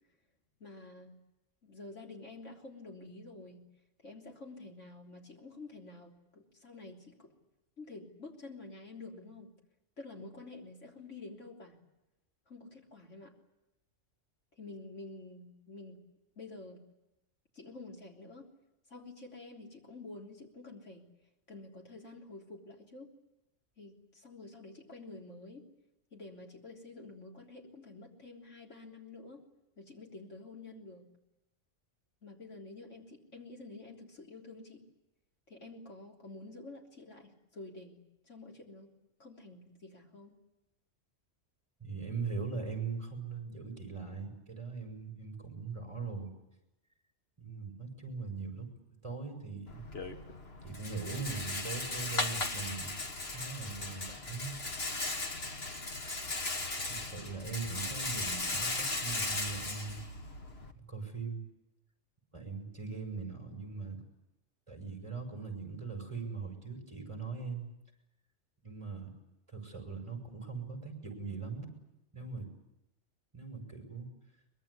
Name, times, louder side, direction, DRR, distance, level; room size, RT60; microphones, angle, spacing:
voice 1, 0.6-1.2 1.6-3.6 4.0-7.4 7.8-9.5 10.0-11.8 12.5-13.4 14.6-16.0 16.4-16.8 17.5-18.5 18.9-21.1 21.5-23.2 23.8-25.7 26.1-29.5 29.8-31.1 32.2-34.8 35.5-38.9 39.2-40.4 62.9-63.2, left 2 dB, 80° left, 0 dB, 3.9 m, -49 dB
voice 2, 41.8-46.3 47.4-48.7 49.0-49.8 50.6-54.5 56.9-60.0 60.8-61.4 62.3-64.0 64.7-67.7 68.6-69.1 69.5-71.7 72.1-72.5 73.3-74.1, right 4 dB, 25° right, 4 dB, 6.0 m, -40 dB
Rattle, 49.7-60.7, left 2 dB, 55° left, 2.0 m, -37 dB
23.5 x 21.5 x 9.8 m, 0.92 s
omnidirectional pair, 1.2 m